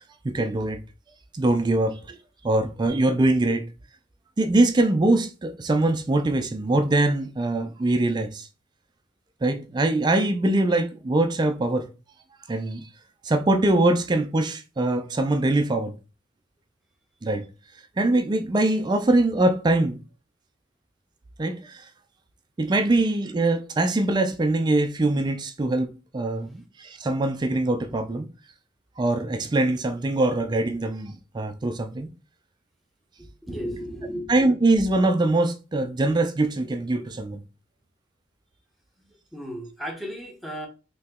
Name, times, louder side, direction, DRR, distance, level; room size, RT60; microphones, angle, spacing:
voice 1, 0.2-0.8 1.3-2.2 2.4-3.6 4.4-8.5 9.4-11.9 12.5-12.8 13.2-15.9 17.2-17.4 18.0-20.0 21.4-21.8 22.6-28.3 29.0-32.1 34.3-37.4, right 2 dB, 25° right, 0.4 m, -23 dB
voice 2, 33.4-34.3 39.3-40.7, equal, ahead, 0.7 m, -34 dB
3.0 x 2.7 x 3.5 m
head